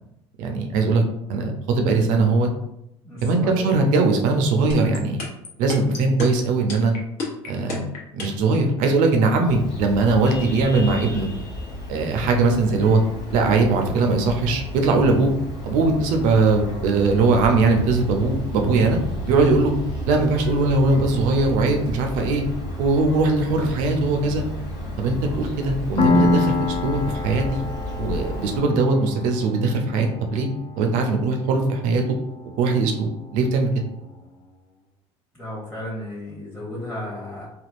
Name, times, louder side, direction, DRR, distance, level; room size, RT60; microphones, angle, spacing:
voice 1, 0.4-1.0 1.3-2.5 3.2-5.2 5.6-6.9 7.5-7.9 8.1-11.3 11.9-13.0 13.3-15.3 15.6-19.0 19.3-19.7 20.1-22.4 22.8-24.4 25.0-27.6 28.0-30.5 30.8-32.0 32.6-33.7, right 3 dB, 65° right, 3 dB, 0.6 m, -20 dB
voice 2, 3.0-3.8 5.9-6.0 35.3-37.5, left 1 dB, 5° left, -6 dB, 0.9 m, -34 dB
sound 1, 4.7-8.5, left 3 dB, 60° left, 1.0 m, -30 dB
Vehicle horn car horn honking, 9.5-28.6, left 1 dB, 80° left, 1.0 m, -33 dB
Piano, 26.0-33.4, left 3 dB, 40° left, 0.6 m, -27 dB
3.5 x 2.3 x 2.5 m, 0.84 s
hypercardioid pair, 75°, 15 cm